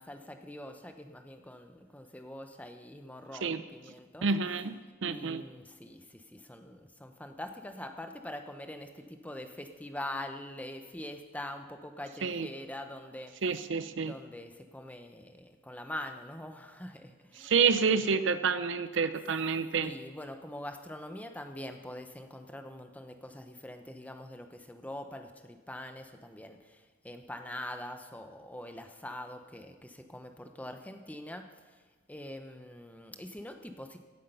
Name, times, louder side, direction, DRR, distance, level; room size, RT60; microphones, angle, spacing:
voice 1, 0.0-4.3 5.0-13.3 14.1-17.6 19.8-31.8 32.1-34.0, left 1 dB, 5° left, 6 dB, 0.7 m, -44 dB
voice 2, 4.2-4.7 5.0-5.4 12.2-12.5 13.4-14.1 17.4-19.9, right 5 dB, 60° right, 12 dB, 0.6 m, -28 dB
17.0 x 8.3 x 5.5 m, 1.4 s
head